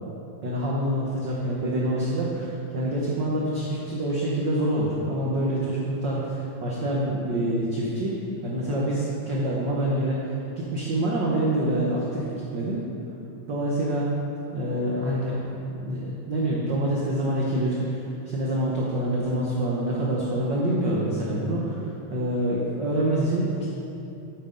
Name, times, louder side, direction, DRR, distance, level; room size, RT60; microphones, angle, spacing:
voice 1, 0.4-12.8 13.5-14.1 14.5-23.7, right 1 dB, 80° right, -4 dB, 1.0 m, -26 dB
9.1 x 7.8 x 3.8 m, 2.9 s
omnidirectional pair, 3.4 m